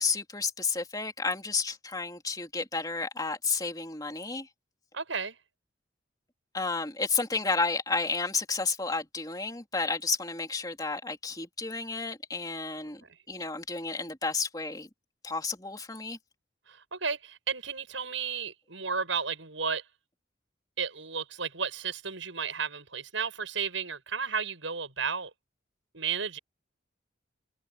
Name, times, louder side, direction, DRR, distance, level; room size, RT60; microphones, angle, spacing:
voice 1, 0.0-4.5 6.5-14.9 15.2-16.2, left 4 dB, 20° left, 3.4 m, -31 dB
voice 2, 4.9-5.4 12.8-13.1 16.7-19.9 20.8-25.3 25.9-26.4, right 6 dB, 85° right, 7.9 m, -33 dB
head